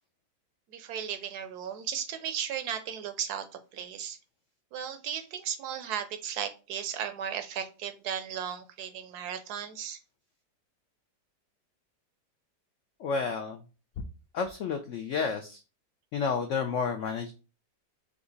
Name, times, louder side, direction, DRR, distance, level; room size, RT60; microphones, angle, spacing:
voice 1, 0.7-4.2 4.7-10.0, right 8 dB, 75° right, 9 dB, 1.1 m, -35 dB
voice 2, 13.0-13.6 14.3-15.6 16.1-17.3, left 5 dB, 80° left, 6 dB, 0.6 m, -30 dB
5.0 x 2.4 x 3.9 m, 0.33 s
omnidirectional pair, 1.8 m